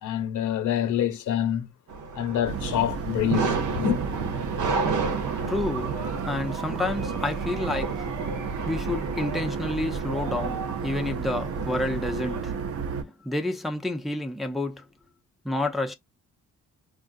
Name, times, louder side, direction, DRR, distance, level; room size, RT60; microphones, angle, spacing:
voice 1, 0.0-1.7 2.1-4.0, left 10 dB, 75° left, 0.9 m, -26 dB
sound 1, 1.9-12.4, right 4 dB, 85° right, 1.0 m, -32 dB
sound 2, 2.4-13.0, right 5 dB, 50° right, 0.6 m, -32 dB
voice 2, 5.0-8.1 8.7-12.6 13.0-14.8 15.4-16.0, left 2 dB, ahead, 0.5 m, -30 dB
3.7 x 2.3 x 2.5 m
cardioid pair, 90°, 30 cm